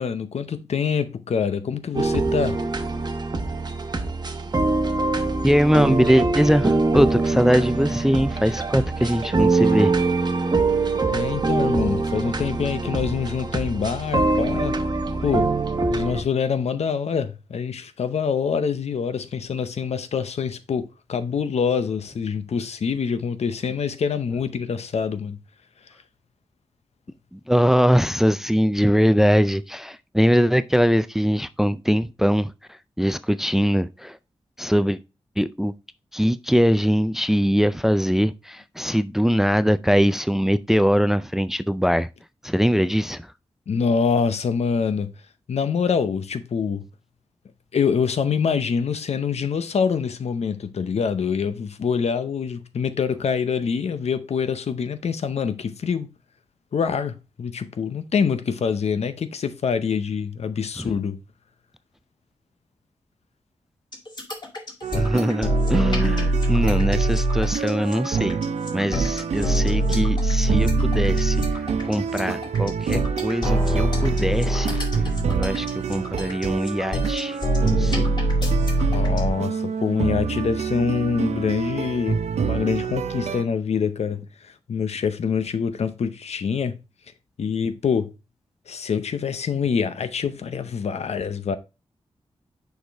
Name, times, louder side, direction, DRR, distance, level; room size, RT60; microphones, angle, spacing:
voice 1, 0.0-2.6 11.1-14.8 15.2-15.5 15.9-25.4 25.8-25.9 43.7-45.1 45.5-46.9 47.7-56.1 56.7-61.2 78.9-86.8 87.4-88.1 88.7-91.6, left 6 dB, 75° left, 0.6 m, -25 dB
sound 1, 1.9-16.2, right 3 dB, 40° right, 1.0 m, -23 dB
voice 2, 5.4-9.9 27.3-34.2 34.6-35.0 35.4-35.7 36.1-42.1 42.4-43.3 60.8-60.9 64.9-68.4 68.7-71.4 71.8-74.8 75.3-78.1, equal, 5° right, 0.3 m, -22 dB
sound 2, 63.9-79.3, right 1 dB, 40° left, 2.1 m, -23 dB
sound 3, 64.8-83.4, right 6 dB, 90° right, 0.6 m, -28 dB
6.4 x 4.9 x 3.4 m
wide cardioid pair, 100°, 11 cm